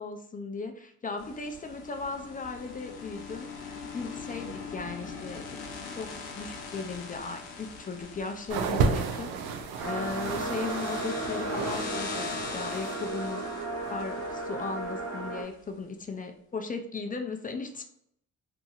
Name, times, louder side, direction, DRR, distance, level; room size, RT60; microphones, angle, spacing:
voice 1, 0.0-5.6 6.0-13.5 13.9-17.8, left 4 dB, 25° left, 5 dB, 0.4 m, -37 dB
sound 1, 1.2-15.4, left 4 dB, 85° left, 0.7 m, -41 dB
sound 2, 8.5-11.9 12.2-13.1 13.8-13.9, right 5 dB, 85° right, 0.5 m, -32 dB
sound 3, 9.8-15.4, right 2 dB, 45° right, 0.8 m, -35 dB
2.8 x 2.6 x 2.4 m, 0.70 s
cardioid pair, 85°, 37 cm